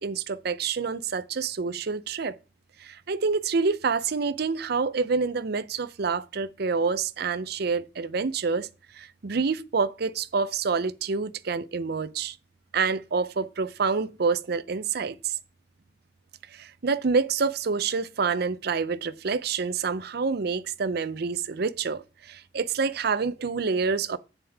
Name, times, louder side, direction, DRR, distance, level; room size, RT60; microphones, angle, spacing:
voice 1, 0.0-2.4 2.8-8.7 8.9-12.4 12.7-15.4 16.5-24.2, right 5 dB, 60° right, 0.6 m, -27 dB
8.7 x 6.8 x 3.5 m
head